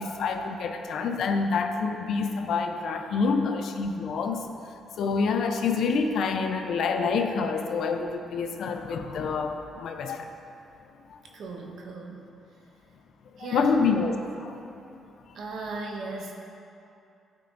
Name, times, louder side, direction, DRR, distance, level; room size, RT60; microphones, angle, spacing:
voice 1, 0.0-4.5 5.0-10.3 11.1-11.2 13.3-14.6, left 4 dB, 70° left, 6 dB, 0.5 m, -27 dB
voice 2, 11.3-12.3 13.4-13.9 15.3-16.3, right 3 dB, 70° right, 1 dB, 0.9 m, -37 dB
12.5 x 4.5 x 2.6 m, 2.6 s
cardioid pair, 90°, 0 cm